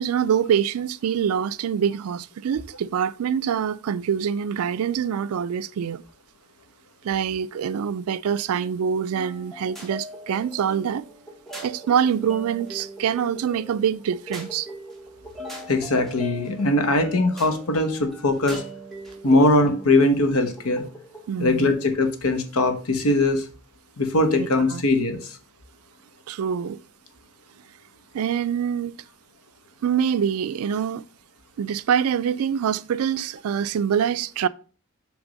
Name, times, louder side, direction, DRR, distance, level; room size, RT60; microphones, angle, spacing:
voice 1, 0.0-6.0 7.0-11.0 11.6-14.7 21.3-21.7 24.4-24.8 26.3-26.8 28.1-28.9 29.8-31.1 31.6-34.5, right 8 dB, 80° right, 0.3 m, -25 dB
sound 1, 9.2-21.3, right 1 dB, ahead, 1.1 m, -41 dB
voice 2, 15.7-18.6 19.2-20.8 21.4-23.4 24.0-25.4, left 2 dB, 85° left, 1.0 m, -21 dB
6.2 x 3.4 x 5.1 m
head